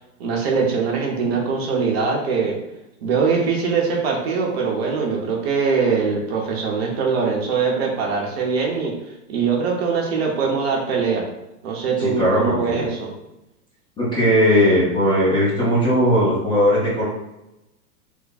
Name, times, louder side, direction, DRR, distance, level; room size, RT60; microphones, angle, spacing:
voice 1, 0.2-2.6 3.0-8.9 9.3-11.3 11.6-13.1, right 5 dB, 40° right, -1 dB, 0.8 m, -22 dB
voice 2, 12.0-12.9 14.0-17.0, equal, 10° left, -8 dB, 0.6 m, -18 dB
3.5 x 2.1 x 3.9 m, 0.91 s
hypercardioid pair, 150°, 46 cm